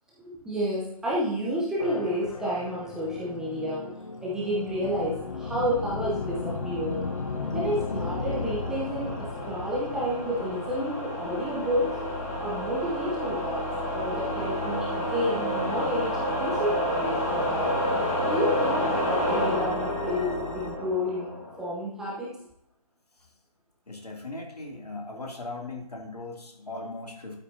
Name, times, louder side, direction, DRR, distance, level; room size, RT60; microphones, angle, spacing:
voice 1, 0.3-3.9 4.2-7.0 7.5-12.0 12.4-13.7 13.9-16.1 16.4-17.7 18.2-21.3 21.6-22.3, equal, 5° right, -6 dB, 0.7 m, -30 dB
sound 1, 1.8-20.8, left 3 dB, 55° left, 1.2 m, -36 dB
sound 2, 5.2-21.7, equal, 25° left, 1.8 m, -31 dB
voice 2, 23.9-27.4, left 2 dB, 75° left, 1 dB, 2.6 m, -39 dB
12.5 x 8.4 x 2.7 m, 0.81 s
figure-of-eight pair, 150°, 20 cm